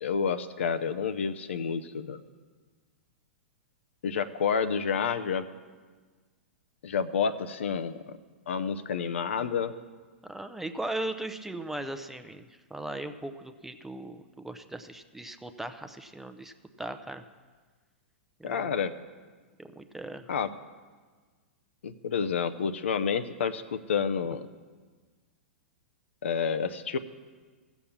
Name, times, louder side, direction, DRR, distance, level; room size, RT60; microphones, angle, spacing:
voice 1, 0.0-2.2 4.0-5.4 6.8-8.2 8.5-9.7 18.4-18.9 20.3-20.5 21.8-24.5 26.2-27.0, left 6 dB, 75° left, 11 dB, 0.7 m, -29 dB
voice 2, 10.2-17.2 18.4-18.7 19.6-20.3, right 1 dB, 5° right, 8 dB, 0.6 m, -38 dB
14.5 x 7.2 x 7.1 m, 1.4 s
hypercardioid pair, 115°, 7 cm